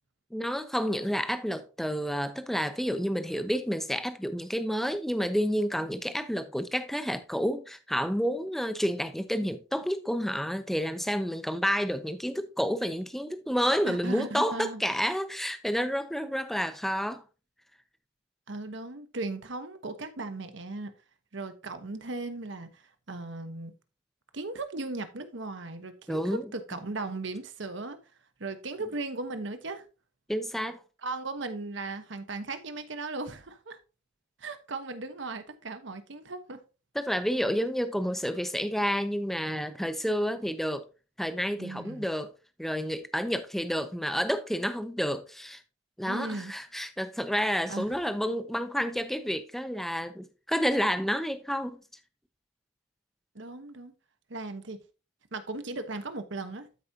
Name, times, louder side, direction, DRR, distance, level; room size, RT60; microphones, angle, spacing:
voice 1, 0.3-17.2 26.1-26.5 30.3-30.8 36.9-40.9 41.2-42.3 42.6-45.6 46.0-51.8, equal, ahead, 0.5 m, -30 dB
voice 2, 13.8-14.8 18.5-20.9 21.3-23.7 24.3-28.0 28.4-29.8 31.0-33.8 34.4-36.6 41.6-42.1 46.0-46.5 47.7-47.9 53.3-53.9 54.3-54.8 55.3-56.7, right 3 dB, 65° right, 1.0 m, -37 dB
13.0 x 4.9 x 2.7 m
head